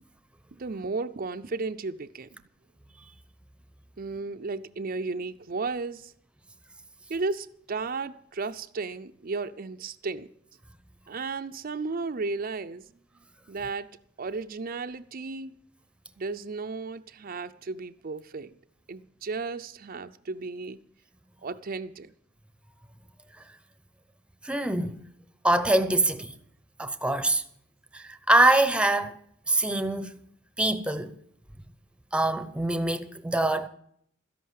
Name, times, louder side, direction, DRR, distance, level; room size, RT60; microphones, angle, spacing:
voice 1, 0.5-2.3 4.0-6.1 7.1-10.3 11.1-12.8 13.5-13.9 14.2-15.6 16.2-18.6 18.9-20.8 21.4-22.1, right 4 dB, 45° right, 0.5 m, -34 dB
voice 2, 24.4-25.0 25.4-26.3 26.8-27.4 27.9-29.2 29.5-30.1 30.6-31.2 32.1-33.7, right 2 dB, 5° right, 0.8 m, -24 dB
13.5 x 11.0 x 7.5 m
head